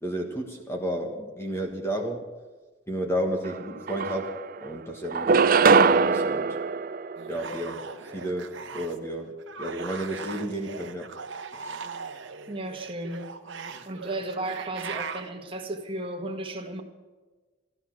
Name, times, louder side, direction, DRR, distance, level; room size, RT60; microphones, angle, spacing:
voice 1, 0.0-2.2 2.9-4.3 4.6-6.5 7.3-7.8 8.1-11.1 11.6-11.8, right 1 dB, 15° left, 2 dB, 1.6 m, -32 dB
sound 1, 3.5-3.6 3.9-4.7 5.1-7.7, right 5 dB, 45° right, 0.5 m, -22 dB
sound 2, 7.2-9.1 9.4-15.3, right 5 dB, 75° right, 1.1 m, -39 dB
voice 2, 12.5-13.3 13.8-16.8, right 1 dB, 25° right, 3 dB, 1.7 m, -34 dB
13.5 x 13.0 x 6.2 m, 1.3 s
head